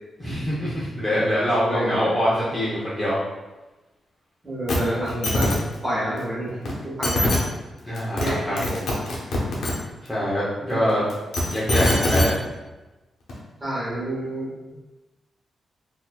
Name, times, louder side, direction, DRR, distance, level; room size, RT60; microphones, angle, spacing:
voice 1, 0.2-3.2 7.8-8.9 10.0-11.0 11.5-12.3, equal, 10° left, -9 dB, 0.6 m, -24 dB
voice 2, 1.7-2.1 4.4-5.5 5.8-7.4 8.2-8.7 10.7-11.0 13.6-14.5, right 1 dB, 15° right, -7 dB, 1.1 m, -28 dB
sound 1, 4.7-4.8 5.1-5.6 6.7-6.8 7.0-7.4 8.0-8.3 8.6-9.7 11.1-12.3 13.3-13.4, left 1 dB, 75° left, 0.9 m, -22 dB
4.0 x 2.6 x 2.2 m, 1.1 s
wide cardioid pair, 170°, 0 cm